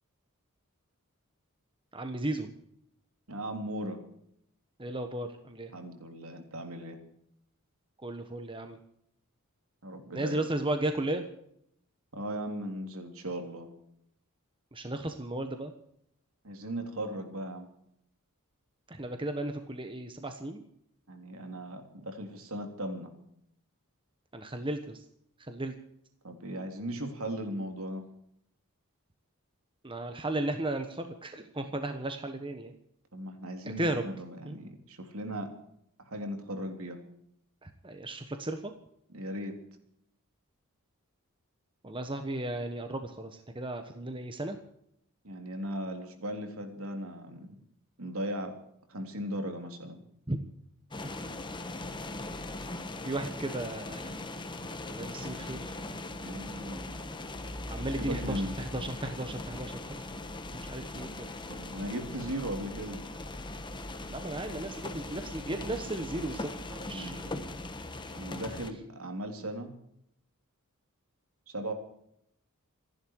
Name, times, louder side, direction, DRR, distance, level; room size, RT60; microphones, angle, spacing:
voice 1, 1.9-2.5 4.8-5.7 8.0-8.8 10.1-11.3 14.7-15.7 18.9-20.6 24.3-25.0 25.4-25.7 29.8-32.7 33.8-34.0 34.4-34.6 37.6-38.7 41.8-44.6 50.3-50.4 52.6-52.8 53.0-54.4 54.9-55.7 57.7-60.1 60.5-61.3 64.1-67.5, right 1 dB, 25° right, 6 dB, 1.3 m, -35 dB
voice 2, 3.3-4.0 5.7-7.0 9.8-10.5 12.1-13.7 16.4-17.7 21.1-23.1 26.2-28.1 33.1-35.5 36.0-37.0 39.1-39.6 45.2-47.6 48.0-48.6 48.9-50.0 56.2-57.0 58.0-58.5 61.5-63.0 66.9-67.2 68.1-69.7 71.5-71.7, right 1 dB, 65° right, 5 dB, 3.5 m, -37 dB
sound 1, 50.9-68.7, left 2 dB, 20° left, 1.4 m, -40 dB
27.5 x 11.0 x 4.8 m, 0.72 s
head